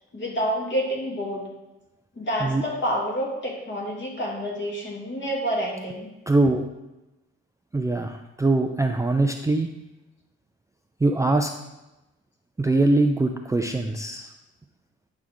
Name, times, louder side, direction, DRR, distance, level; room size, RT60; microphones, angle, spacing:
voice 1, 0.1-1.5 2.2-6.1, equal, 40° left, -2 dB, 2.5 m, -28 dB
voice 2, 6.3-6.6 7.7-9.7 11.0-11.5 12.6-14.3, right 2 dB, 10° right, 4 dB, 0.4 m, -22 dB
10.5 x 4.7 x 3.8 m, 0.98 s
cardioid pair, 90°, 30 cm